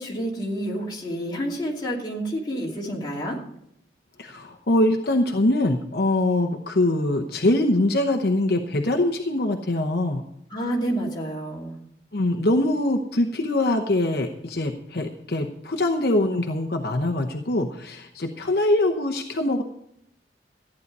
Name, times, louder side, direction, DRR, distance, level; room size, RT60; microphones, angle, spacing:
voice 1, 0.0-3.4 10.5-11.7, equal, 25° left, -3 dB, 2.8 m, -29 dB
voice 2, 4.2-10.2 12.1-19.6, left 1 dB, 60° left, 3 dB, 0.9 m, -23 dB
14.5 x 9.7 x 5.4 m, 0.74 s
head